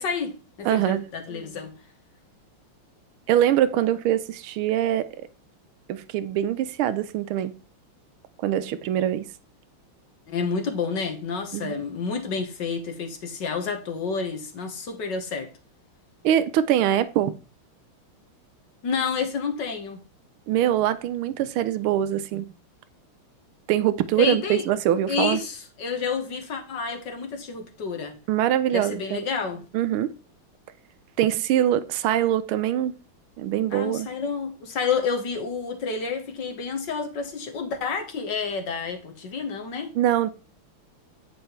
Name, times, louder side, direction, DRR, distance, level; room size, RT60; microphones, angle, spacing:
voice 1, 0.0-1.7 10.3-15.5 18.8-20.0 24.2-24.6 25.1-28.2 28.7-29.7 33.7-39.9, left 5 dB, 60° left, 1.9 m, -29 dB
voice 2, 0.6-1.1 3.3-5.1 5.9-7.5 8.4-9.3 11.5-11.8 16.2-17.3 20.5-22.5 23.7-25.4 28.3-29.3 29.7-30.1 31.2-32.9 33.4-34.1 39.9-40.3, right 11 dB, 85° right, 1.5 m, -23 dB
8.6 x 5.3 x 4.4 m
omnidirectional pair, 2.3 m